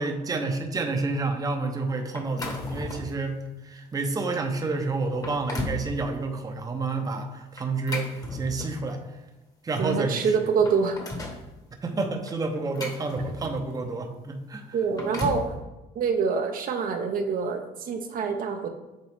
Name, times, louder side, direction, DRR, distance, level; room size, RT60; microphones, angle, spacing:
voice 1, 0.0-9.0 9.6-10.3 11.8-14.6, right 3 dB, 20° right, 4 dB, 0.8 m, -29 dB
sound 1, 2.1-3.2 3.8-3.9 4.5-4.6 5.1-5.9 7.6-8.9 9.9-10.0 10.4-11.4 12.3-13.7 14.7-15.5, left 2 dB, 20° left, 1.2 m, -35 dB
voice 2, 9.8-11.0 14.7-15.5 15.9-18.7, right 5 dB, 55° right, 5 dB, 0.8 m, -26 dB
8.0 x 3.7 x 3.6 m, 1.0 s
cardioid pair, 110°, 17 cm